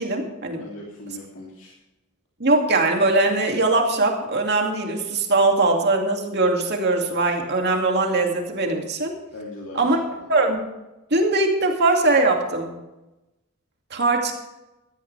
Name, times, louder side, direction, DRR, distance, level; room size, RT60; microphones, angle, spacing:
voice 1, 0.0-0.6 2.4-9.1 9.7-10.0 10.3-10.7 11.1-12.7 13.9-14.3, right 2 dB, 50° right, 2 dB, 2.5 m, -21 dB
voice 2, 0.6-1.7 9.3-10.3, left 2 dB, 60° left, -3 dB, 2.8 m, -39 dB
17.0 x 13.0 x 3.4 m, 0.99 s
head